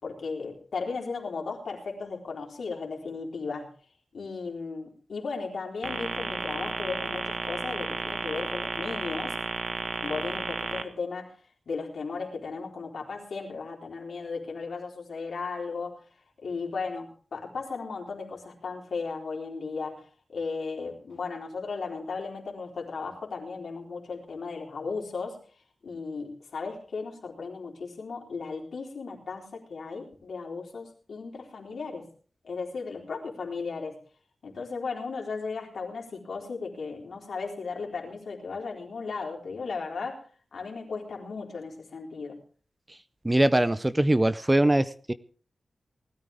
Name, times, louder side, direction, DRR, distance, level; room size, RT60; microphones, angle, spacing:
voice 1, 0.0-3.7 4.1-9.4 10.0-11.3 11.7-16.0 16.4-20.1 20.3-25.4 25.8-32.1 32.4-34.0 34.4-40.2 40.5-42.4, left 4 dB, 75° left, 0 dB, 3.8 m, -36 dB
sound 1, 5.8-10.8, right 4 dB, 75° right, 1.3 m, -33 dB
voice 2, 43.2-45.1, right 1 dB, 15° right, 14 dB, 0.5 m, -22 dB
19.5 x 13.0 x 3.5 m, 0.41 s
wide cardioid pair, 140°, 0 cm